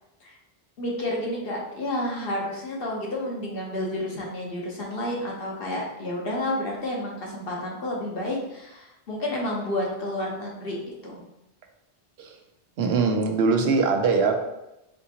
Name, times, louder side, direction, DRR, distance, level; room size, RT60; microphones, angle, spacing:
voice 1, 0.8-11.2, left 1 dB, 65° left, -2 dB, 1.2 m, -30 dB
voice 2, 12.8-14.4, right 4 dB, 80° right, 4 dB, 0.9 m, -22 dB
4.3 x 3.7 x 2.8 m, 0.89 s
omnidirectional pair, 1.0 m